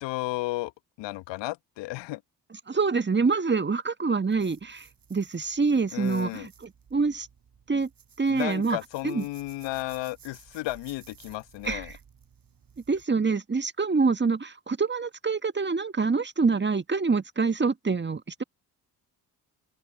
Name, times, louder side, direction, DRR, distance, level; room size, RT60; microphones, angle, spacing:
voice 1, 0.0-0.7 1.0-2.2 5.9-6.5 8.3-11.9, left 19 dB, 65° left, 1.4 m, -33 dB
voice 2, 2.7-7.3 7.7-7.9 8.2-8.8 9.0-9.2 11.6-11.8 12.9-18.4, right 4 dB, 25° right, 1.6 m, -26 dB
sound 1, 4.3-13.1, right 7 dB, 45° right, 7.5 m, -54 dB
open air
figure-of-eight pair, 40°, 47 cm